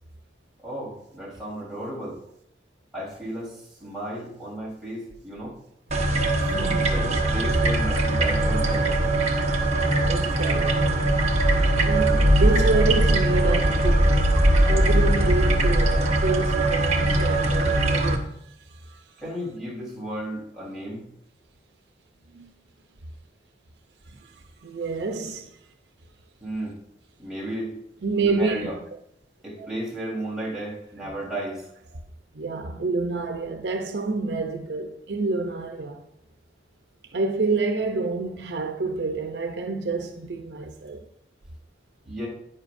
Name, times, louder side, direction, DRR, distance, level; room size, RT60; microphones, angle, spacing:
voice 1, 0.6-2.2 2.9-5.6 6.5-9.0 19.2-21.0 26.4-26.8 27.2-27.7 28.2-28.8 29.4-31.6 42.0-42.3, right 1 dB, 5° right, 3.8 m, -34 dB
sound 1, 5.9-18.2, right 1 dB, 40° right, 1.0 m, -21 dB
voice 2, 6.4-6.9 10.1-11.3 11.8-18.3 22.3-22.5 24.6-25.5 28.0-28.7 29.6-29.7 32.3-36.0 37.1-41.0, right 3 dB, 75° right, 0.7 m, -28 dB
9.9 x 9.8 x 2.6 m
head